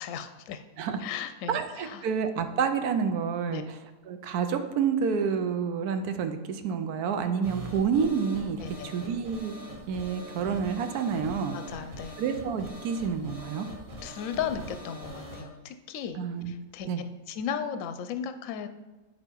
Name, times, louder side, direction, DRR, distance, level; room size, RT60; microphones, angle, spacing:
voice 1, 0.0-0.6 1.0-2.0 3.5-3.6 8.6-8.9 11.5-12.2 14.0-16.2 16.5-16.9 17.3-18.7, left 8 dB, 65° left, 9 dB, 0.9 m, -35 dB
voice 2, 1.5-3.8 4.1-9.5 9.9-11.6 12.2-13.7 16.2-16.5 16.9-17.0, right 6 dB, 75° right, 8 dB, 1.2 m, -29 dB
sound 1, 7.4-15.4, equal, 90° right, 2.3 m, -43 dB
8.7 x 5.3 x 4.5 m, 1.1 s
omnidirectional pair, 1.7 m